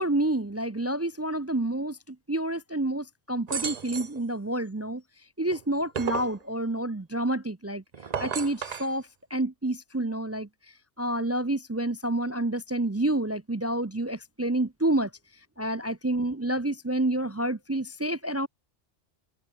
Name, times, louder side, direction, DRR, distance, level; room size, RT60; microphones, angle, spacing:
voice 1, 0.0-5.0 5.4-7.8 8.2-9.0 9.3-10.5 11.0-15.1 15.6-18.5, right 1 dB, 25° right, 0.3 m, -28 dB
sound 1, 3.5-4.2 5.5-6.4 7.9-8.9, right 6 dB, 40° right, 0.8 m, -33 dB
open air
omnidirectional pair, 1.2 m